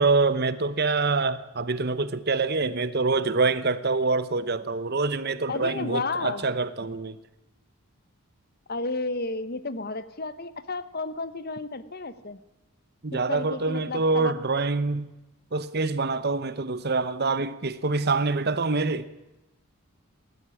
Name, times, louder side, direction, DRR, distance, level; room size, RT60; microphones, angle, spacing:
voice 1, 0.0-7.2 13.0-15.1 15.5-19.1, right 3 dB, 45° right, 1.0 m, -25 dB
voice 2, 5.5-6.4 8.7-12.4 13.3-14.3, left 3 dB, 45° left, 1.1 m, -32 dB
20.0 x 13.5 x 9.9 m
head